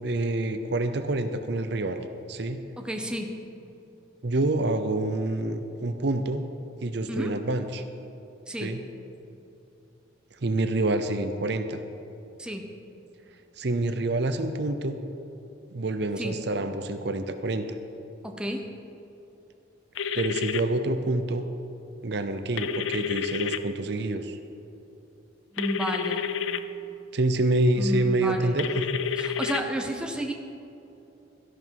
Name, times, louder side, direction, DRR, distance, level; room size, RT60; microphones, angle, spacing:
voice 1, 0.0-2.6 4.2-6.4 6.8-7.8 8.6-8.8 10.4-11.8 13.6-15.0 15.7-17.6 20.1-21.5 22.0-24.4 27.1-29.0, right 2 dB, 60° right, 8 dB, 0.6 m, -27 dB
voice 2, 2.8-3.3 7.1-7.3 8.5-8.8 12.4-12.7 16.2-16.4 18.2-18.7 25.5-26.3 27.8-28.6 29.2-30.3, equal, 5° right, 3 dB, 0.8 m, -31 dB
sound 1, 20.0-20.6 22.6-23.6 25.6-26.6 28.6-29.6, left 7 dB, 80° left, 0.5 m, -29 dB
13.5 x 11.0 x 4.7 m, 2.9 s
head